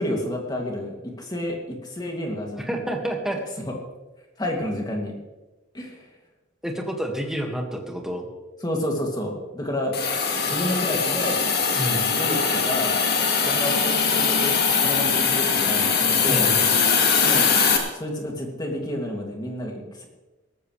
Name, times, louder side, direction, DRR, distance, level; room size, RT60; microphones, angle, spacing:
voice 1, 0.0-2.7 3.6-3.8 4.4-5.1 5.7-6.1 8.6-10.0 10.5-11.5 12.2-12.9 13.4-16.5 17.2-17.5 17.9-20.1, left 1 dB, 20° left, 0 dB, 2.6 m, -30 dB
voice 2, 2.7-3.4 6.6-8.3 11.8-12.1 16.3-16.7, equal, ahead, 1 dB, 2.0 m, -29 dB
Hiss, 9.9-17.8, left 5 dB, 50° left, 2.1 m, -21 dB
18.5 x 14.0 x 3.4 m, 1.1 s
head